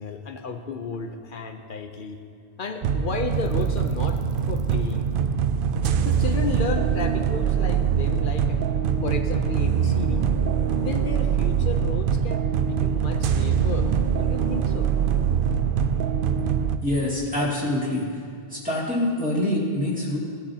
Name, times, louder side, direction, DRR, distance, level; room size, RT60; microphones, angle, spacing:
voice 1, 0.0-2.2 2.6-4.2 4.5-5.1 6.0-8.6 9.0-10.3 10.8-13.9 14.2-14.9, left 4 dB, 60° left, 5 dB, 0.8 m, -33 dB
sound 1, 2.8-16.8, right 7 dB, 65° right, 0.7 m, -23 dB
voice 2, 16.8-18.1 18.5-20.2, left 1 dB, 10° right, -7 dB, 2.3 m, -25 dB
17.0 x 9.8 x 2.8 m, 2.2 s
omnidirectional pair, 1.0 m